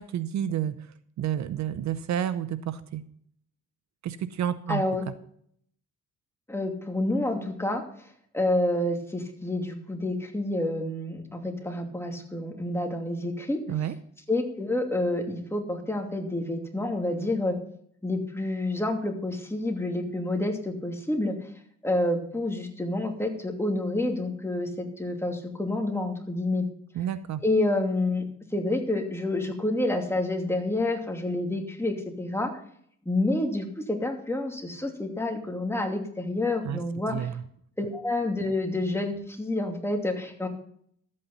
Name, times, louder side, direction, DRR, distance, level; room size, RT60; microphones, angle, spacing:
voice 1, 0.0-3.0 4.0-4.8 13.7-13.9 26.9-27.4 36.6-36.8 37.1-37.4, right 10 dB, 65° right, 14 dB, 0.8 m, -30 dB
voice 2, 4.7-5.0 6.5-7.8 8.3-13.6 14.3-17.6 18.0-21.4 21.8-26.6 27.4-28.2 28.5-32.5 33.0-37.3 37.8-40.5, left 2 dB, 10° left, 3 dB, 2.7 m, -28 dB
13.0 x 8.7 x 5.4 m, 0.65 s
cardioid pair, 90°, 30 cm